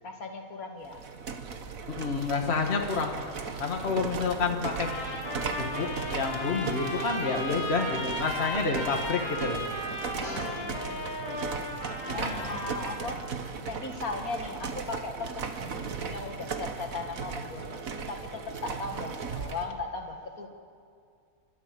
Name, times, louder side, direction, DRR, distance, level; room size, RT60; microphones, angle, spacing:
voice 1, 0.0-1.0 10.1-11.1 11.3-11.7 12.1-13.3 13.7-20.5, left 3 dB, 75° left, 3 dB, 2.3 m, -38 dB
sound 1, 0.8-19.7, right 5 dB, 70° right, 1.6 m, -37 dB
voice 2, 1.9-3.2 3.6-4.9 5.6-9.6 12.2-12.5 13.0-13.1, left 4 dB, 45° left, 2 dB, 1.8 m, -29 dB
sound 2, 4.7-13.1, left 1 dB, 15° left, 5.1 m, -36 dB
29.5 x 12.5 x 7.6 m, 2.3 s
omnidirectional pair, 1.5 m